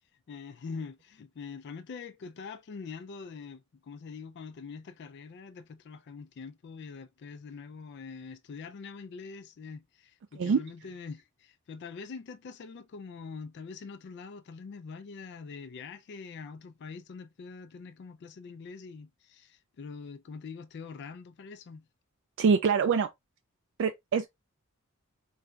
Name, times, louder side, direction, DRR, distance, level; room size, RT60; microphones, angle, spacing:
voice 1, 0.3-21.8, left 5 dB, 50° left, 0.3 m, -44 dB
voice 2, 22.4-23.1 23.8-24.3, right 5 dB, 60° right, 0.3 m, -24 dB
3.8 x 3.3 x 2.3 m
head